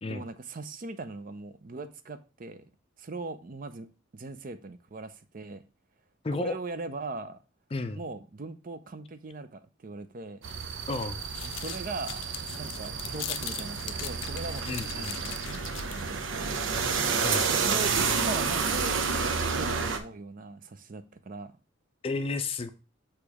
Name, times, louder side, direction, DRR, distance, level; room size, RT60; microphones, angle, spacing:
voice 1, 0.1-2.6 3.0-3.9 4.1-5.6 6.4-7.4 7.9-10.4 11.4-12.2 12.6-16.6 17.5-21.5, right 3 dB, 45° right, 0.5 m, -40 dB
voice 2, 6.2-6.6 7.7-8.0 10.9-11.2 14.7-15.1 17.2-17.5 22.0-22.7, left 3 dB, 30° left, 0.4 m, -32 dB
sound 1, 10.4-20.0, right 5 dB, 85° right, 0.7 m, -30 dB
sound 2, 10.5-16.2, left 12 dB, 90° left, 0.5 m, -41 dB
6.6 x 3.1 x 4.8 m
head